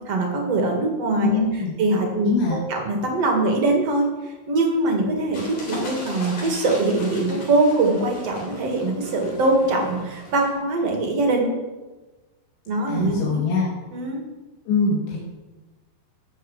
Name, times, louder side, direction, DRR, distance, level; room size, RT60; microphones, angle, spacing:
voice 1, 0.1-11.5 12.7-13.4 13.9-14.2, right 2 dB, 45° right, 1 dB, 2.2 m, -22 dB
voice 2, 1.2-1.7 2.2-2.6 12.9-13.7 14.7-15.2, left 4 dB, 80° left, -4 dB, 4.1 m, -23 dB
sound 1, 5.3-10.5, left 1 dB, 40° left, 4.3 m, -38 dB
12.5 x 6.5 x 7.4 m, 1.2 s
omnidirectional pair, 5.1 m